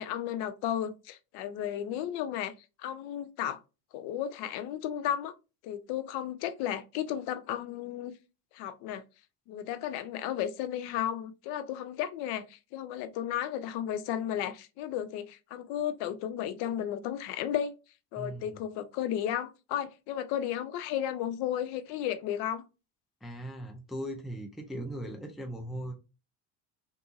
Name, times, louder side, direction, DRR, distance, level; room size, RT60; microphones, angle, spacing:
voice 1, 0.0-2.5 2.8-3.6 3.9-5.3 5.6-8.1 8.5-9.0 9.5-17.7 18.1-22.6, left 10 dB, 55° left, 0.5 m, -34 dB
voice 2, 18.2-18.6 23.2-25.9, right 1 dB, ahead, 0.5 m, -39 dB
2.7 x 2.6 x 2.3 m
hypercardioid pair, 70°, 47 cm